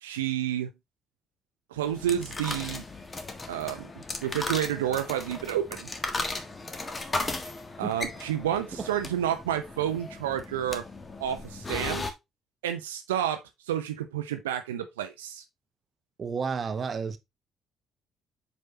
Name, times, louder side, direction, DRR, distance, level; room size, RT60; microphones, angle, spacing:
voice 1, 0.0-0.7 1.7-2.8 3.5-3.9 4.2-5.9 7.8-10.8 11.2-12.0 12.6-13.4 13.7-15.4, right 10 dB, 80° right, 0.7 m, -30 dB
sound 1, 1.8-12.1, left 2 dB, 30° left, 1.6 m, -36 dB
voice 2, 16.2-17.2, right 5 dB, 40° right, 1.0 m, -31 dB
7.7 x 5.6 x 2.8 m
figure-of-eight pair, 45°, 0 cm